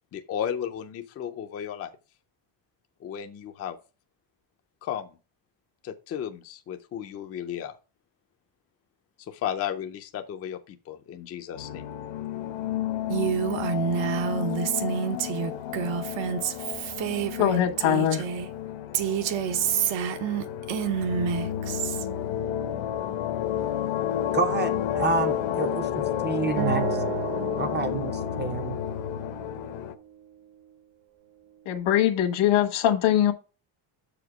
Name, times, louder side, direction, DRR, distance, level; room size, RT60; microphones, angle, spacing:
voice 1, 0.1-1.9 3.0-3.8 4.8-5.2 5.8-7.7 9.3-11.9, left 9 dB, 30° left, 0.5 m, -34 dB
sound 1, 11.6-29.9, left 10 dB, 65° left, 0.9 m, -31 dB
Female speech woman speaking, 13.1-18.5 18.9-22.0, right 8 dB, 65° right, 1.0 m, -28 dB
voice 2, 17.4-18.2 31.6-33.3, left 11 dB, 80° left, 1.6 m, -22 dB
voice 3, 24.3-27.0 27.6-28.8, right 4 dB, 20° right, 0.5 m, -29 dB
Acoustic guitar, 26.6-29.8, right 7 dB, 90° right, 1.2 m, -33 dB
6.8 x 5.1 x 4.7 m
cardioid pair, 165°, 49 cm